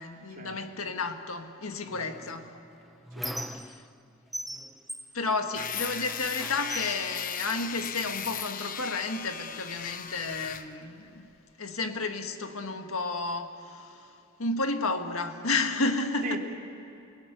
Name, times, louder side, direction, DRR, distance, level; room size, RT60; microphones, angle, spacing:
voice 1, 0.0-2.6 3.5-3.7 5.1-11.3 11.6-14.0 14.4-16.4, left 3 dB, 85° left, 1.7 m, -32 dB
voice 2, 1.8-2.3 3.1-3.7 16.2-16.4, right 2 dB, 40° right, 3.1 m, -40 dB
Squeak, 2.3-4.0 4.3-6.0 6.4-8.1 8.8-9.0 9.3-10.3, equal, ahead, 0.5 m, -41 dB
sound 1, 5.5-10.7, left 8 dB, 40° left, 1.0 m, -37 dB
28.5 x 18.0 x 9.3 m
head